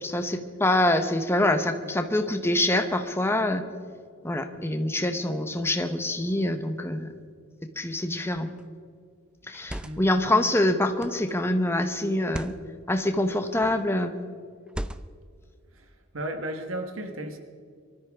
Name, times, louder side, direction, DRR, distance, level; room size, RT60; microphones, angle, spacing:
voice 1, 0.0-3.6 4.2-7.1 7.8-8.5 9.5-12.5 12.9-14.2, left 1 dB, 10° left, 7 dB, 1.0 m, -25 dB
sound 1, 8.3-8.6 9.4-10.2 11.0-11.3 12.2-12.6 13.5-13.9 14.7-15.3, equal, 5° right, 0.4 m, -37 dB
voice 2, 16.1-17.4, right 1 dB, 85° right, 6 dB, 1.3 m, -34 dB
23.5 x 13.5 x 3.6 m, 2.1 s
head